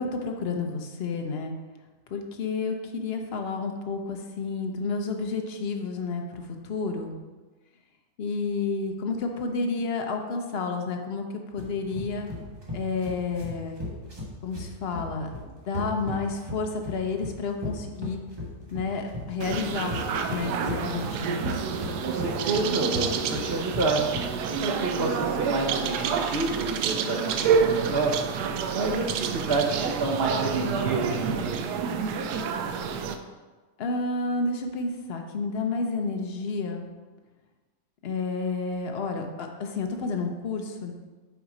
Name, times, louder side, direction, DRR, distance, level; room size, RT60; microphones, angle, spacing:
voice 1, 0.0-1.5 2.1-7.1 8.2-11.2 11.5-12.3 12.7-13.8 14.4-15.3 15.6-18.2 18.7-20.0 20.3-21.6 33.8-36.8 38.0-40.9, left 4 dB, 50° left, 4 dB, 0.7 m, -30 dB
sound 1, 11.6-24.5, left 1 dB, 15° right, 1.2 m, -36 dB
sound 2, 19.4-33.2, right 6 dB, 75° right, 1.1 m, -28 dB
voice 2, 22.0-24.0 24.5-31.6, right 3 dB, 55° right, 1 dB, 0.7 m, -29 dB
7.0 x 4.3 x 4.9 m, 1.3 s
omnidirectional pair, 1.8 m